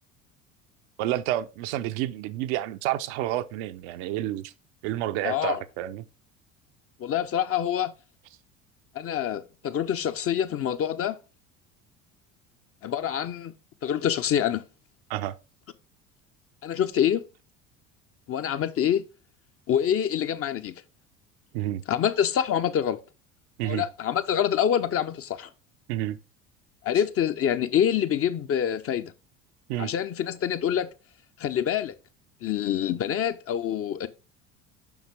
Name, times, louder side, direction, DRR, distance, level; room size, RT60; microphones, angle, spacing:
voice 1, 1.0-4.5 4.8-6.0 15.1-15.4 21.5-21.8 23.6-23.8 25.9-26.2 29.7-29.9, right 13 dB, 65° right, 0.7 m, -29 dB
voice 2, 5.2-5.6 7.0-7.9 8.9-11.2 12.8-13.5 13.8-14.6 16.6-17.2 18.3-19.0 19.7-20.7 21.9-23.0 23.6-25.5 26.8-29.1 29.8-30.9 31.4-31.9 32.4-34.1, left 9 dB, 40° left, 0.8 m, -26 dB
7.2 x 5.8 x 3.5 m
hypercardioid pair, 65°, 37 cm